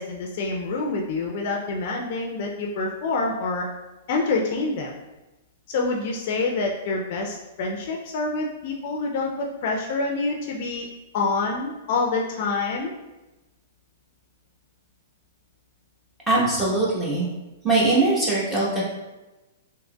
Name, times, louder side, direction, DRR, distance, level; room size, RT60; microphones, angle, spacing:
voice 1, 0.0-3.7 4.1-4.9 5.7-10.9 11.1-12.9, left 3 dB, 55° left, 0 dB, 0.4 m, -26 dB
voice 2, 16.3-17.2 17.6-18.8, right 2 dB, 15° right, -6 dB, 1.2 m, -21 dB
3.7 x 2.8 x 2.3 m, 1.1 s
hypercardioid pair, 135°, 0 cm